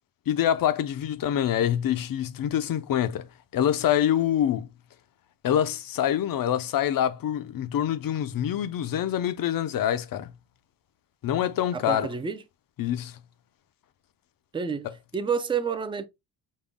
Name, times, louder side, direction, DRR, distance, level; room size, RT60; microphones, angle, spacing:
voice 1, 0.3-3.3 3.5-4.7 5.4-10.3 11.2-12.1 12.8-13.2, left 10 dB, 50° left, 0.5 m, -25 dB
voice 2, 11.7-12.4 14.5-14.9 15.1-16.1, right 6 dB, 10° right, 0.3 m, -29 dB
5.4 x 2.2 x 3.5 m
cardioid pair, 150°, 47 cm